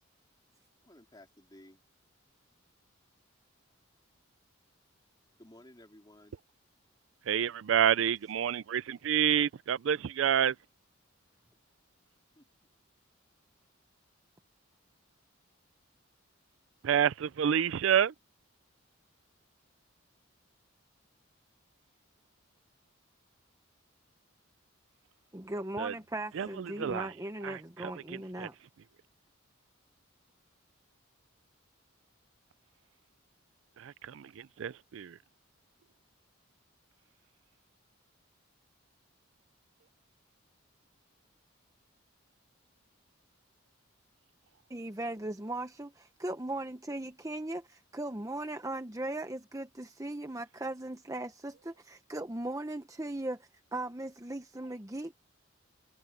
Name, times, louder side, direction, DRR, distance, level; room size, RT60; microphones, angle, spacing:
voice 1, 0.8-1.8 5.4-6.4 12.4-12.5, left 1 dB, 20° left, 3.5 m, -55 dB
voice 2, 7.3-10.6 16.8-18.1 25.8-25.9 26.4-27.1 27.4-28.5 33.8-35.2, right 9 dB, 65° right, 0.4 m, -29 dB
voice 3, 25.3-28.5 44.7-55.1, right 1 dB, 15° right, 0.8 m, -38 dB
head